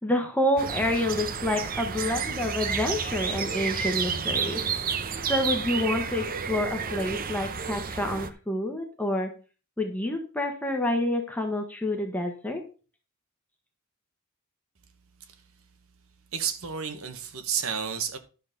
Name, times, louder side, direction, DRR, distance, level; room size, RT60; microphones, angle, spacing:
voice 1, 0.0-4.6 5.3-9.3 9.8-12.6, left 1 dB, 5° left, 1.2 m, -28 dB
sound 1, 0.6-8.3, right 6 dB, 45° right, 0.8 m, -31 dB
voice 2, 16.3-18.2, right 7 dB, 80° right, 1.3 m, -31 dB
11.5 x 4.0 x 6.6 m
head